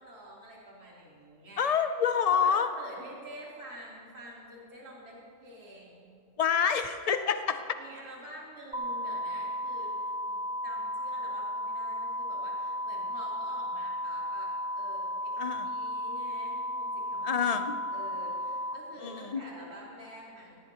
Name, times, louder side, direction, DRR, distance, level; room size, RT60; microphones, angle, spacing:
voice 1, 0.0-1.8 2.3-6.2 7.8-10.0 10.2-20.6, equal, 85° right, -6 dB, 4.1 m, -48 dB
voice 2, 1.6-2.7 6.4-7.6 15.4-15.7 17.2-17.7 19.0-19.4, left 7 dB, 70° left, 9 dB, 0.3 m, -27 dB
sound 1, 8.7-18.7, equal, 5° right, 0.9 m, -34 dB
18.0 x 18.0 x 3.0 m, 2.5 s
omnidirectional pair, 1.6 m